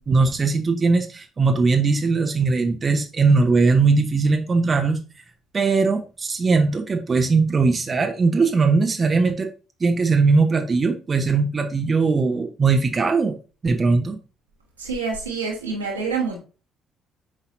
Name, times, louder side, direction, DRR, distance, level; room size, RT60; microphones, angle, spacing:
voice 1, 0.1-5.0 5.5-9.5 9.8-14.2, right 4 dB, 30° right, 5 dB, 0.9 m, -20 dB
voice 2, 14.8-16.4, right 4 dB, 85° right, -3 dB, 1.7 m, -27 dB
8.2 x 5.6 x 2.7 m, 0.35 s
figure-of-eight pair, 45°, 0 cm